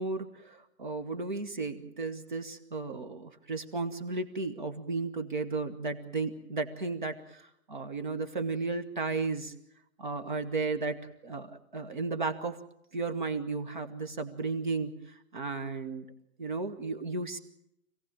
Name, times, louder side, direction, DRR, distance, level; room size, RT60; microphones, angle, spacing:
voice 1, 0.0-9.5 10.0-11.0 11.2-12.6 12.9-16.0 16.4-17.4, right 3 dB, 35° right, 7 dB, 1.6 m, -34 dB
26.5 x 17.5 x 8.8 m, 0.78 s
hypercardioid pair, 175°, 41 cm